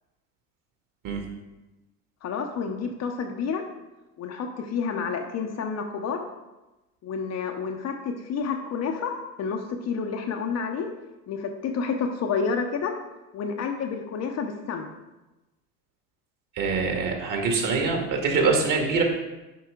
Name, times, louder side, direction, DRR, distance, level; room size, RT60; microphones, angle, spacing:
voice 1, 2.2-3.6 4.2-6.2 7.0-10.9 11.3-13.0 13.3-14.9, left 5 dB, 35° left, 4 dB, 0.9 m, -29 dB
voice 2, 16.5-19.0, right 4 dB, 40° right, 2 dB, 2.0 m, -24 dB
9.4 x 5.4 x 3.8 m, 1.0 s
hypercardioid pair, 75°, 47 cm